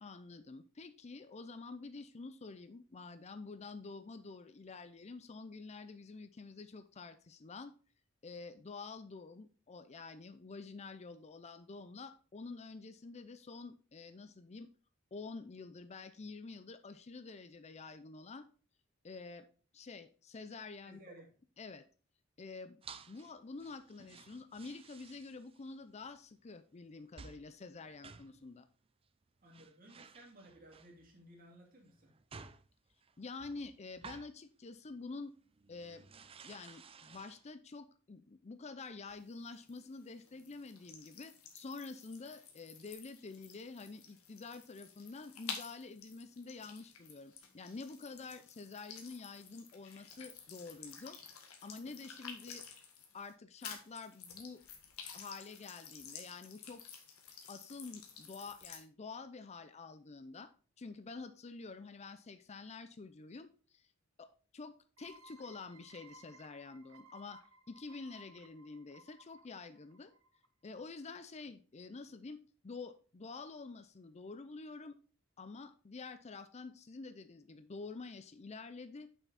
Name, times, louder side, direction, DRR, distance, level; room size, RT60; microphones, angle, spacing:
voice 1, 0.0-7.7 8.2-14.7 15.1-18.4 19.0-19.5 19.7-21.0 21.6-21.8 22.4-22.8 23.1-28.7 33.2-35.3 35.7-36.0 36.4-51.2 51.6-52.6 53.1-54.6 55.1-56.8 57.5-60.5 60.8-63.9 64.2-67.4 67.7-70.1 70.6-72.4 72.6-75.0 75.4-79.1, left 4 dB, 30° left, 11 dB, 0.5 m, -48 dB
voice 2, 20.8-21.3 29.4-32.1, right 1 dB, 40° right, 0 dB, 2.6 m, -57 dB
sound 1, 22.8-23.3 23.6-25.8 26.0-26.2 27.2-27.5 27.8-28.4 29.2-29.3 29.5-31.1 31.9-34.4 34.9-35.0 35.4-37.5, right 5 dB, 25° right, 0.5 m, -55 dB
sound 2, 39.1-53.3 53.6-58.8, left 6 dB, 90° left, 1.6 m, -52 dB
sound 3, 65.0-70.5, right 2 dB, 80° right, 1.0 m, -60 dB
7.1 x 5.9 x 4.0 m, 0.38 s
head